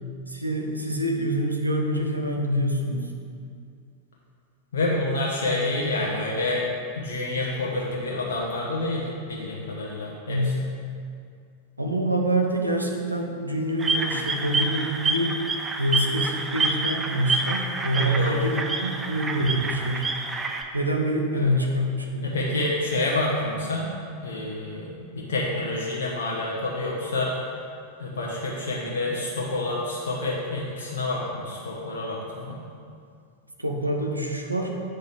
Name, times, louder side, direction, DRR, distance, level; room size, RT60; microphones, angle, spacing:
voice 1, 0.3-3.1 10.3-10.6 11.8-15.3 15.8-20.1 20.7-22.3 33.6-34.7, right 1 dB, 85° right, 2 dB, 0.7 m, -26 dB
voice 2, 4.7-6.6 6.9-10.5 17.9-18.4 21.3-21.5 22.2-23.9 24.2-27.4 28.0-32.6, left 2 dB, 60° left, -4 dB, 0.9 m, -28 dB
sound 1, 13.8-20.6, right 3 dB, 15° right, 0.5 m, -28 dB
8.6 x 5.1 x 3.5 m, 2.3 s
figure-of-eight pair, 90°, 0 cm